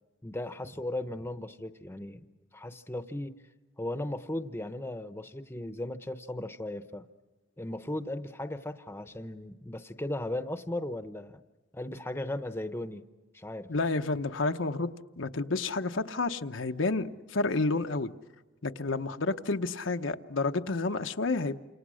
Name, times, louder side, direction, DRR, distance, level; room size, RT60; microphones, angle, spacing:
voice 1, 0.2-2.3 2.5-3.4 3.8-7.1 7.6-11.4 11.7-13.1 13.3-13.7, left 1 dB, 10° left, 10 dB, 0.9 m, -36 dB
voice 2, 13.7-18.1 18.6-21.6, left 3 dB, 85° left, 6 dB, 0.9 m, -30 dB
29.5 x 27.5 x 6.3 m, 1.2 s
head